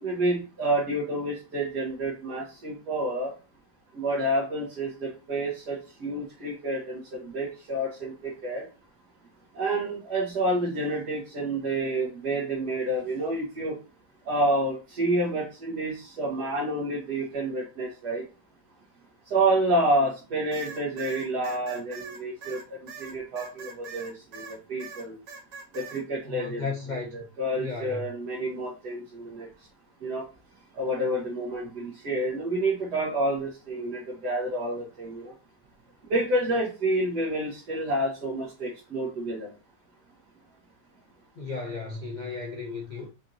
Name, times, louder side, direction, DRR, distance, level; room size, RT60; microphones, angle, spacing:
voice 1, 0.0-3.3 3.9-8.7 9.5-13.8 14.3-18.2 19.3-25.1 25.7-26.6 27.1-29.5 30.0-30.3 30.7-35.3 36.1-39.5, right 1 dB, 70° right, 1.8 m, -29 dB
sound 1, 20.5-24.5 24.8-26.0, right 5 dB, 90° right, 1.8 m, -42 dB
voice 2, 26.2-27.3 27.6-28.1 41.4-43.1, left 4 dB, 75° left, 0.4 m, -34 dB
5.2 x 2.5 x 2.8 m
omnidirectional pair, 1.8 m